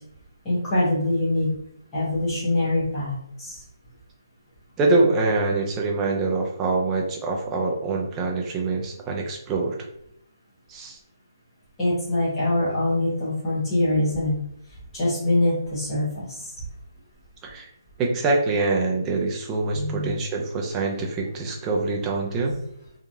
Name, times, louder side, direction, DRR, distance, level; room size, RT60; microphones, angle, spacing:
voice 1, 0.4-1.5 1.9-3.6 11.8-14.4 14.9-16.5 19.7-20.1, left 1 dB, 10° left, -11 dB, 0.8 m, -24 dB
voice 2, 4.8-9.8 10.7-11.0 17.4-17.7 18.0-22.6, right 3 dB, 10° right, 0 dB, 0.4 m, -24 dB
2.9 x 2.3 x 2.6 m, 0.74 s
hypercardioid pair, 165°, 2 cm